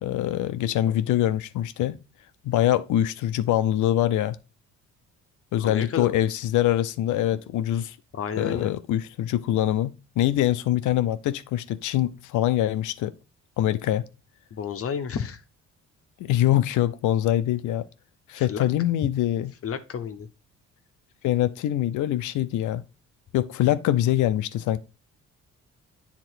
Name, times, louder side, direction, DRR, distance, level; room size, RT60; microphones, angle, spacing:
voice 1, 0.0-2.0 2.4-4.4 5.5-8.0 8.4-9.9 10.2-13.1 13.6-14.1 16.2-17.9 18.3-19.5 21.2-22.8 23.3-24.8, left 12 dB, 80° left, 0.6 m, -24 dB
voice 2, 5.6-6.2 8.1-8.7 14.5-15.4 18.3-18.7 19.6-20.3, left 7 dB, 50° left, 0.8 m, -31 dB
8.0 x 3.7 x 4.5 m
cardioid pair, 90°, 30 cm